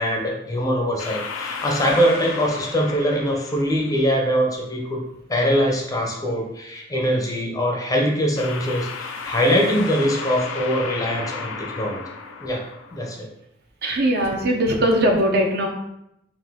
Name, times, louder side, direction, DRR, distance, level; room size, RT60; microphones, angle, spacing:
voice 1, 0.0-5.0 5.3-12.0 12.4-12.6 12.9-13.3, equal, 20° left, 0 dB, 0.5 m, -22 dB
sound 1, 1.0-4.3 8.4-13.2, left 5 dB, 80° left, 0.4 m, -34 dB
voice 2, 13.8-15.7, right 1 dB, 55° right, 1 dB, 0.6 m, -20 dB
3.9 x 2.5 x 3.5 m, 0.82 s
head